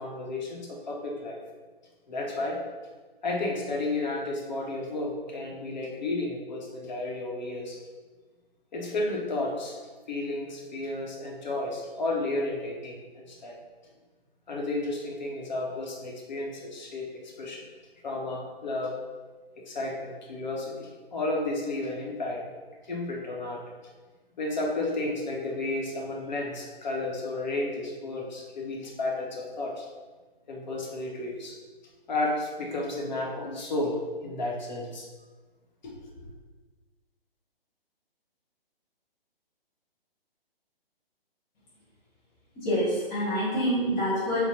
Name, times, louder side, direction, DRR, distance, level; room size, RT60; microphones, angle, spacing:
voice 1, 0.0-1.4 2.1-2.6 3.2-7.8 8.7-9.8 10.1-13.6 14.5-17.6 18.0-19.0 19.6-22.5 22.9-23.6 24.4-29.9 30.5-31.6 32.1-35.1 35.8-36.3, left 2 dB, 50° left, -1 dB, 0.9 m, -32 dB
voice 2, 42.6-44.5, equal, 10° left, -11 dB, 0.5 m, -26 dB
3.6 x 2.1 x 4.3 m, 1.3 s
figure-of-eight pair, 140°, 30 cm